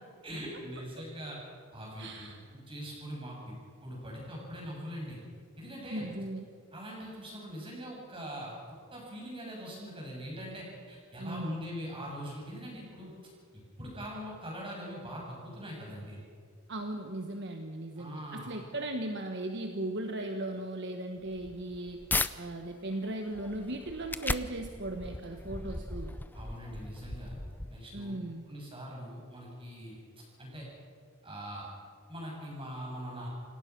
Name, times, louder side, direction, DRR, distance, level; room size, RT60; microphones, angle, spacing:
voice 1, 0.2-1.4 1.7-5.2 5.6-6.1 6.7-13.3 13.8-16.2 18.0-18.5 26.3-27.4 27.7-28.2 28.5-30.0 30.4-30.6 31.2-31.7 32.1-33.3, equal, 25° right, -2 dB, 7.4 m, -42 dB
voice 2, 2.0-2.4 5.9-6.4 11.2-11.6 16.7-22.0 22.4-26.2 27.9-28.4, right 1 dB, 55° right, 5 dB, 1.3 m, -37 dB
sound 1, 21.2-22.3 22.8-28.1, left 2 dB, 10° left, 0.5 m, -37 dB
27.5 x 18.0 x 6.1 m, 2.1 s
head